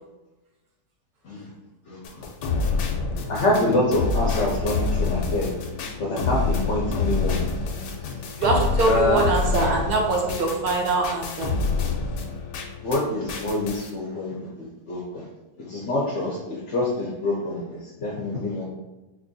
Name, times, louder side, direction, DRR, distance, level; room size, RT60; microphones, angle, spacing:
sound 1, 2.0-13.0 13.3-13.9, left 4 dB, 85° left, 1.2 m, -27 dB
voice 1, 3.3-5.5 6.0-7.4 8.9-9.3 12.8-14.4 14.9-15.3 15.7-18.6, left 2 dB, 60° left, -3 dB, 0.7 m, -25 dB
voice 2, 8.4-11.5, right 3 dB, 70° right, 0 dB, 1.2 m, -23 dB
4.5 x 2.7 x 2.6 m, 1.1 s
omnidirectional pair, 1.8 m